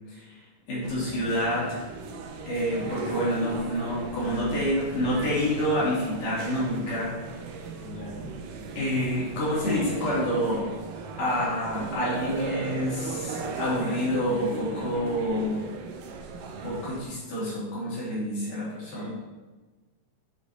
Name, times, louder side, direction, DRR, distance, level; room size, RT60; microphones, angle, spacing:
voice 1, 0.7-1.8 2.5-7.1 8.8-10.7 11.2-15.7 16.6-19.1, equal, 65° left, -7 dB, 3.7 m, -28 dB
sound 1, 0.8-17.0, right 4 dB, 75° right, 2.1 m, -37 dB
voice 2, 7.7-8.3 18.9-19.1, left 1 dB, 5° right, -8 dB, 1.1 m, -41 dB
7.4 x 4.8 x 4.0 m, 1.2 s
omnidirectional pair, 4.1 m